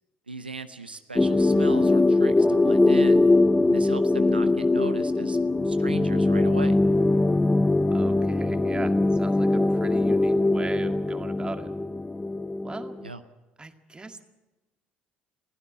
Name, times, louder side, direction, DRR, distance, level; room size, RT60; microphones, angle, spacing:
voice 1, 0.3-3.2 3.6-5.4 5.6-6.8 13.0-13.2, right 3 dB, 90° right, 10 dB, 0.7 m, -38 dB
sound 1, 1.2-13.1, left 2 dB, 10° left, 0.8 m, -22 dB
voice 2, 7.9-11.7 12.6-13.0 13.6-14.2, right 2 dB, 20° right, 7 dB, 2.0 m, -37 dB
21.5 x 16.0 x 8.6 m, 1.1 s
figure-of-eight pair, 55°, 5 cm